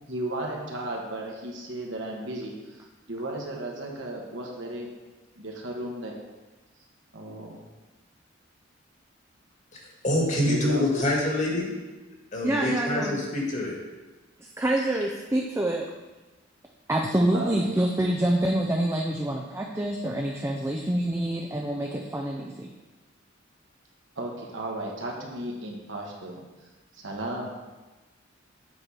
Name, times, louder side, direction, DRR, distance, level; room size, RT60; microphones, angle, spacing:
voice 1, 0.1-2.8 3.1-4.9 5.3-6.2 7.1-7.6 10.5-11.0 17.3-17.8 24.1-26.4 26.9-27.5, right 1 dB, 70° right, -1 dB, 1.4 m, -34 dB
voice 2, 9.7-11.7 12.3-13.8, left 1 dB, 40° left, -2 dB, 1.7 m, -26 dB
voice 3, 12.4-13.2 14.4-15.9 16.9-22.7, right 1 dB, 15° right, 1 dB, 0.5 m, -26 dB
7.9 x 4.4 x 4.8 m, 1.2 s
head